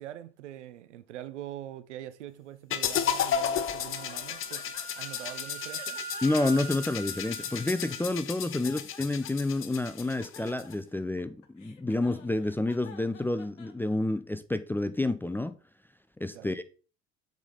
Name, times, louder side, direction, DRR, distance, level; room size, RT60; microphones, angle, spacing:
voice 1, 0.0-6.0 8.5-8.8 16.3-16.6, right 12 dB, 70° right, 0.7 m, -44 dB
sound 1, 2.7-10.7, left 8 dB, 35° left, 0.8 m, -33 dB
Wind instrument woodwind instrument, 3.9-8.1, right 5 dB, 25° right, 1.2 m, -43 dB
sound 2, 4.1-5.3 5.7-7.8 8.3-9.6 9.9-14.2, left 6 dB, 80° left, 1.0 m, -51 dB
voice 2, 6.2-15.6 16.2-16.6, left 2 dB, 5° left, 0.4 m, -29 dB
7.1 x 5.1 x 3.9 m
figure-of-eight pair, 60°, 36 cm